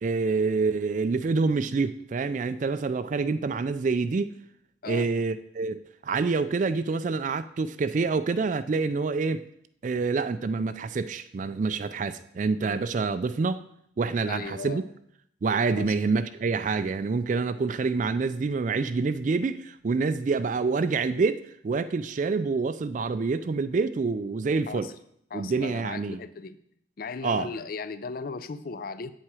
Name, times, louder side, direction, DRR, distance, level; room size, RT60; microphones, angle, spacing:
voice 1, 0.0-4.3 4.9-9.4 9.8-13.6 14.0-14.8 15.4-24.9 25.3-26.2 27.2-27.5, right 4 dB, 40° right, 12 dB, 0.3 m, -27 dB
voice 2, 14.2-14.8 15.8-15.9 24.7-24.9 25.3-26.6 27.0-29.1, left 4 dB, 45° left, 14 dB, 0.4 m, -36 dB
8.4 x 7.5 x 4.8 m, 0.72 s
head